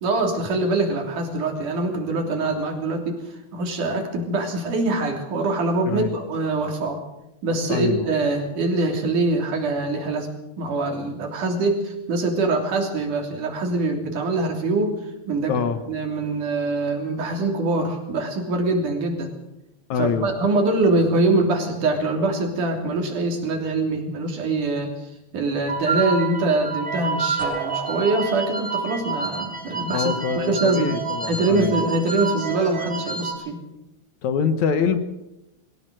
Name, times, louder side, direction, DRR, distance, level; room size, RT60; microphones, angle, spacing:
voice 1, 0.0-7.0 7.4-10.3 10.6-15.0 15.3-19.3 20.0-30.9 31.3-33.6, right 2 dB, 80° right, 3 dB, 4.7 m, -24 dB
voice 2, 7.7-8.1 15.5-15.8 19.9-20.3 29.9-31.8 34.2-35.0, left 6 dB, 70° left, 9 dB, 2.5 m, -24 dB
sound 1, 25.7-33.3, right 4 dB, 15° left, 4.0 m, -28 dB
sound 2, 27.4-30.2, right 7 dB, 65° right, 7.3 m, -37 dB
22.5 x 16.5 x 7.7 m, 0.91 s
omnidirectional pair, 3.5 m